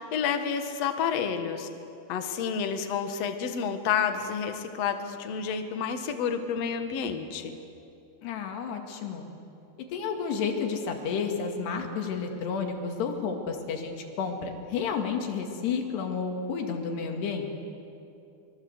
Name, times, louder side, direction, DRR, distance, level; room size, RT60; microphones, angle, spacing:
voice 1, 0.1-1.7 2.1-7.6, left 7 dB, 55° left, 7 dB, 1.9 m, -29 dB
voice 2, 8.2-9.3 9.9-17.5, left 5 dB, 75° left, 4 dB, 4.2 m, -31 dB
25.0 x 23.5 x 8.1 m, 2.7 s
omnidirectional pair, 4.8 m